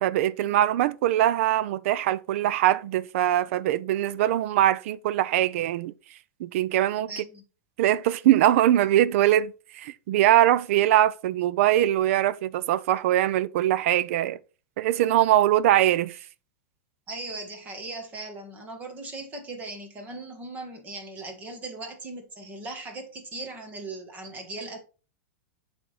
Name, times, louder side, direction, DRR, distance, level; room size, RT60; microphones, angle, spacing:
voice 1, 0.0-5.9 6.4-7.1 7.8-14.4 14.8-16.2, right 13 dB, 55° right, 0.5 m, -22 dB
voice 2, 7.1-7.4 17.1-24.8, right 2 dB, 20° right, 1.4 m, -38 dB
8.6 x 3.5 x 4.2 m
supercardioid pair, 165°, 8 cm